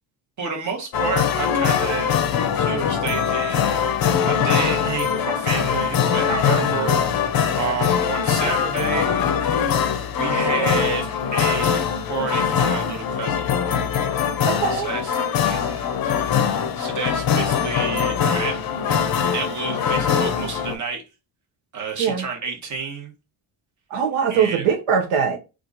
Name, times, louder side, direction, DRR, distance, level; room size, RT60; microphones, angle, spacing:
voice 1, 0.4-2.2 2.6-3.7 4.0-9.2 10.1-13.5 14.7-15.9 16.8-18.6 19.3-21.0 21.7-23.1 24.3-24.7, right 5 dB, 40° right, 1.1 m, -29 dB
sound 1, 0.9-20.8, left 7 dB, 50° left, 0.5 m, -22 dB
voice 2, 14.5-14.9 22.0-22.2 23.9-25.4, right 7 dB, 85° right, 0.8 m, -21 dB
2.9 x 2.4 x 3.8 m
cardioid pair, 130°, 48 cm